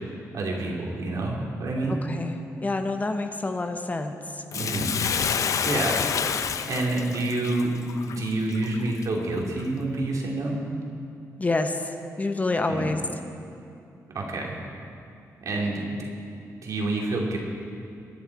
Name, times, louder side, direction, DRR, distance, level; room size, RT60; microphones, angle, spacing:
voice 1, 0.3-2.0 4.5-4.9 5.6-6.0 6.7-7.7 8.0-10.6 12.7-12.9 14.1-14.6 15.4-16.0 16.6-17.4, right 2 dB, 60° right, -1 dB, 2.8 m, -28 dB
voice 2, 1.9-2.4 2.6-4.4 11.4-11.9 12.2-13.0, left 2 dB, 25° left, 6 dB, 0.9 m, -27 dB
Bathtub (filling or washing), 4.5-9.0 9.6-9.7, left 7 dB, 60° left, 0.6 m, -28 dB
24.0 x 10.5 x 4.7 m, 2.6 s
cardioid pair, 110°, 6 cm